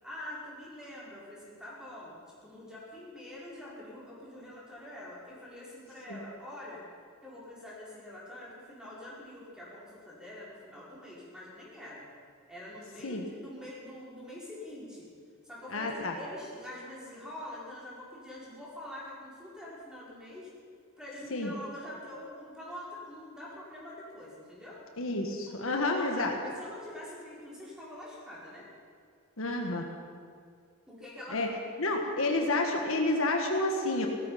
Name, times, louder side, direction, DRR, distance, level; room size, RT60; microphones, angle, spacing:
voice 1, 0.0-6.8 7.2-12.0 12.5-15.1 15.4-20.5 21.0-24.8 25.5-28.6 30.9-31.4, left 1 dB, 5° right, -7 dB, 5.0 m, -45 dB
voice 2, 15.7-16.1 21.3-21.5 25.0-26.3 29.4-29.8 31.3-31.5 31.8-34.1, left 2 dB, 70° left, 2 dB, 1.6 m, -29 dB
17.5 x 13.5 x 5.8 m, 2.1 s
head